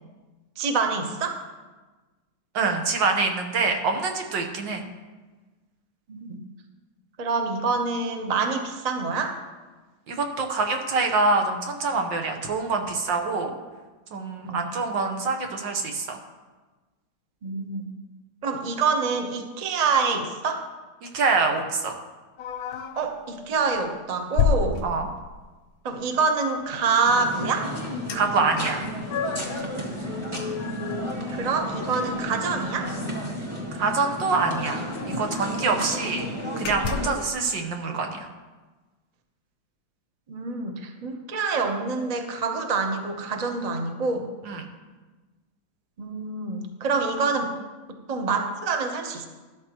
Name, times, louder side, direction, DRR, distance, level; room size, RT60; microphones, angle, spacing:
voice 1, 0.6-1.4 6.1-6.4 7.2-9.4 14.4-14.6 17.4-17.9 18.4-20.6 23.0-24.9 25.8-27.7 31.4-32.9 40.3-44.3 46.0-47.5 48.1-49.3, right 4 dB, 35° right, 4 dB, 0.7 m, -26 dB
voice 2, 2.5-4.8 10.1-13.5 14.1-16.1 21.1-21.9 24.8-25.1 28.1-28.8 33.8-34.8 35.2-36.3 36.6-38.3 44.5-44.7, right 4 dB, 75° right, 4 dB, 1.8 m, -25 dB
sound 1, 22.4-23.1 23.6-23.8 24.4-25.5 28.1-28.2 28.5-29.6 30.0-31.8 32.2-32.3 32.6-32.8 33.9-34.0 34.2-34.3 34.8-35.6 36.1-36.2 36.6-37.3, left 7 dB, 65° left, 0.9 m, -30 dB
sound 2, 27.0-37.1, equal, 15° right, 1.6 m, -32 dB
12.5 x 12.0 x 3.0 m, 1.3 s
omnidirectional pair, 2.0 m